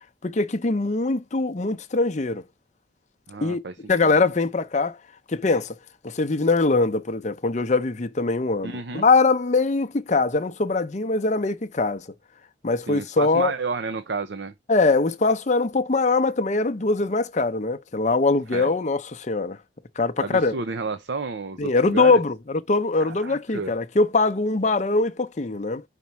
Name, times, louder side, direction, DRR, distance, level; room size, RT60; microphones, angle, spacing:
voice 1, 0.2-2.4 3.4-5.0 5.3-5.8 6.0-12.1 12.6-13.5 14.7-19.6 20.0-20.6 21.6-25.8, left 3 dB, 40° left, 0.6 m, -22 dB
voice 2, 3.3-3.7 4.0-4.1 8.6-9.0 12.9-14.5 18.5-18.7 20.2-22.1 23.0-23.7, right 4 dB, 75° right, 0.7 m, -31 dB
5.3 x 4.1 x 4.6 m
head